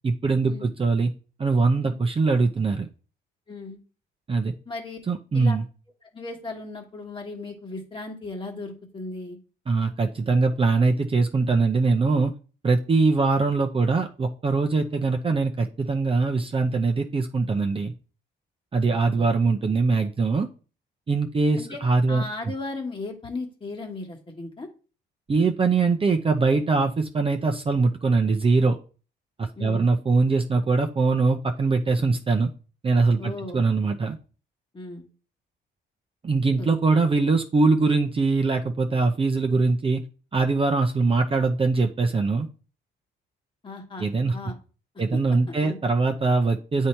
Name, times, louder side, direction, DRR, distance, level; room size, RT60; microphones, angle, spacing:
voice 1, 0.0-1.1 1.4-2.9 4.3-4.5 5.1-5.6 9.7-12.3 12.6-17.9 18.7-20.5 21.1-22.2 25.3-28.8 29.4-32.5 32.8-34.2 36.2-40.0 40.3-42.5 44.0-44.4 45.0-46.9, right 3 dB, 25° right, 4 dB, 0.6 m, -22 dB
voice 2, 3.5-3.8 4.7-5.0 5.3-5.6 6.1-9.4 18.9-19.3 21.6-21.8 22.1-24.7 29.6-29.9 33.2-33.6 34.7-35.1 36.6-36.7 43.6-44.6 45.1-45.2 45.5-45.8, left 2 dB, 25° left, 1 dB, 1.5 m, -36 dB
8.3 x 2.8 x 4.5 m, 0.36 s
cardioid pair, 90°, 20 cm